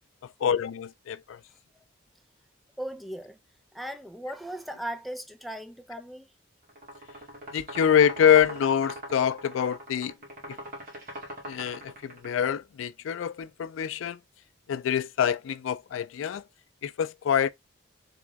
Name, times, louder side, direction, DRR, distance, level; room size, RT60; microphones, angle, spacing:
voice 1, 0.4-1.4 7.5-10.1 11.5-14.2 14.7-16.4 16.8-17.5, left 8 dB, 85° left, 0.3 m, -25 dB
voice 2, 1.5-1.8 2.8-3.4 3.7-6.3, right 1 dB, ahead, 0.4 m, -38 dB
sound 1, 6.7-12.4, right 1 dB, 50° right, 1.7 m, -41 dB
3.6 x 3.0 x 3.3 m
head